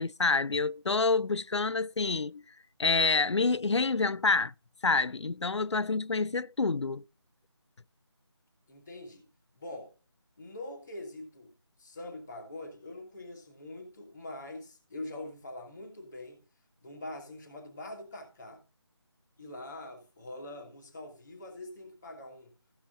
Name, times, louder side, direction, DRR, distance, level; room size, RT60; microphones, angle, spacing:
voice 1, 0.0-2.4 2.8-4.5 4.8-7.0, left 4 dB, 80° left, 0.4 m, -27 dB
voice 2, 8.7-9.3 9.5-9.9 10.4-11.5 11.8-16.4 16.8-18.6 19.4-22.5, left 1 dB, ahead, 0.4 m, -44 dB
15.5 x 6.0 x 4.0 m
figure-of-eight pair, 165°, 15 cm